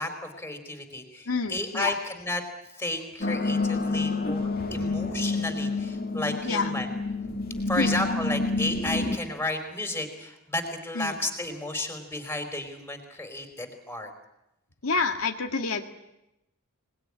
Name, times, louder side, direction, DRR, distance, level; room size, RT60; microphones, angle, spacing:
voice 1, 0.0-2.4 2.8-6.9 7.7-14.1, left 1 dB, 10° left, 5 dB, 4.4 m, -33 dB
voice 2, 1.3-1.9 6.5-6.7 7.8-7.9 11.0-11.1 14.8-15.8, left 4 dB, 75° left, 3 dB, 1.8 m, -27 dB
sound 1, 3.2-9.2, left 3 dB, 45° left, 2.3 m, -28 dB
26.0 x 20.5 x 9.9 m, 0.91 s
head